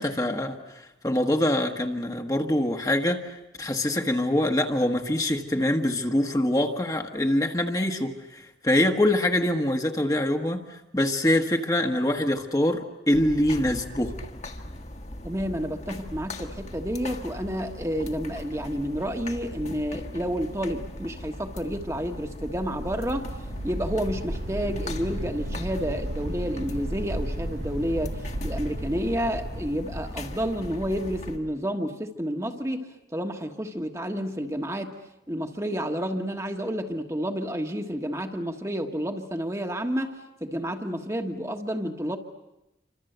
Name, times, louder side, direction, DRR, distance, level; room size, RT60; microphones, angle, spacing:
voice 1, 0.0-14.1, left 1 dB, 20° left, 4 dB, 1.4 m, -24 dB
sound 1, 13.1-31.4, left 1 dB, 40° left, 1.7 m, -39 dB
voice 2, 15.2-23.3 23.6-34.9 35.3-40.1 40.4-42.2, equal, 15° right, 4 dB, 1.4 m, -30 dB
sound 2, 21.5-31.5, right 1 dB, 90° right, 1.5 m, -35 dB
28.5 x 25.5 x 8.0 m, 0.92 s
head